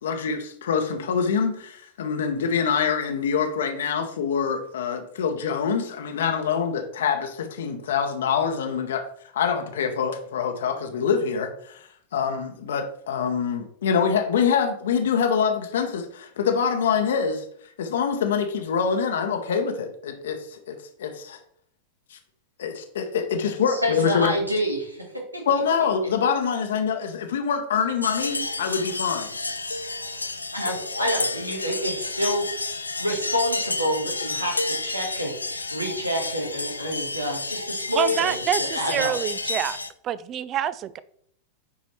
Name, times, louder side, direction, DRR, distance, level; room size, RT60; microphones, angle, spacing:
voice 1, 0.0-9.0 9.3-17.4 17.8-21.4 22.1-22.2 22.6-24.4 25.5-29.3, left 6 dB, 60° left, 5 dB, 0.9 m, -25 dB
voice 2, 23.7-25.1 25.3-25.4 29.7-29.8 30.5-39.1, equal, 85° right, 1 dB, 1.6 m, -28 dB
sound 1, 28.0-39.9, left 3 dB, 80° left, 0.5 m, -30 dB
voice 3, 37.9-39.8 40.0-41.0, right 11 dB, 30° right, 17 dB, 0.4 m, -26 dB
9.4 x 4.0 x 3.1 m, 0.64 s
figure-of-eight pair, 90°, 0 cm